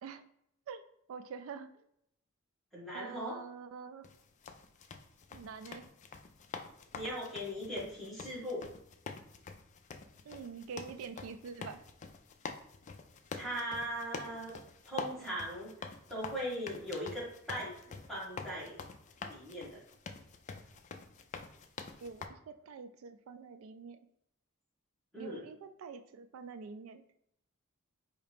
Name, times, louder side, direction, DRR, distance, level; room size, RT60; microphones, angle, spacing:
voice 1, 1.1-1.8 2.9-4.0 5.3-5.8 10.3-11.8 22.0-24.0 25.2-27.1, right 5 dB, 75° right, 10 dB, 0.3 m, -46 dB
voice 2, 2.7-3.4 6.9-8.6 13.4-14.5 14.8-18.8 19.2-19.8 25.1-25.4, equal, ahead, -7 dB, 1.6 m, -39 dB
sound 1, 4.0-22.3, left 5 dB, 35° left, 0.3 m, -46 dB
4.9 x 2.7 x 3.4 m, 0.77 s
head